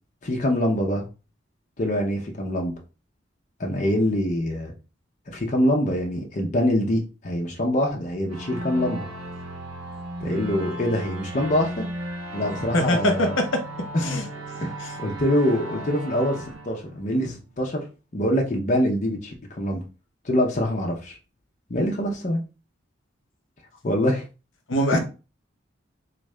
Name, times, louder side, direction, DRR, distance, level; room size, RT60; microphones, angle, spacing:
voice 1, 0.2-1.1 1.8-2.8 3.6-4.7 5.3-9.1 10.2-11.9 12.3-13.3 14.1-14.2 14.6-17.8 18.1-19.8 20.2-21.2 21.7-22.4 23.8-24.2 24.9-25.0, equal, 40° left, 0.6 m, -24 dB
sound 1, 8.3-17.6, right 1 dB, 85° right, 0.7 m, -35 dB
voice 2, 12.7-13.6 14.0-14.3 14.8-15.0 24.7-25.0, left 1 dB, 80° left, 0.8 m, -23 dB
3.5 x 2.4 x 3.2 m
head